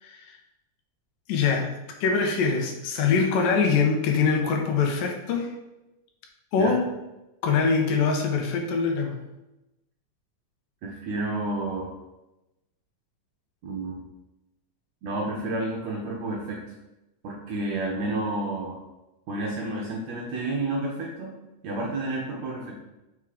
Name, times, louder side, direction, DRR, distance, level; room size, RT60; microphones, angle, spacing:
voice 1, 0.0-0.4 1.3-1.7 2.0-5.5 6.5-6.8 7.4-9.2, left 5 dB, 80° left, 2 dB, 2.4 m, -23 dB
voice 2, 10.8-11.9 13.6-14.0 15.0-16.6 17.2-18.8 19.3-21.3 21.6-22.7, right 2 dB, 75° right, -2 dB, 1.7 m, -30 dB
5.7 x 3.7 x 4.8 m, 0.97 s
omnidirectional pair, 4.1 m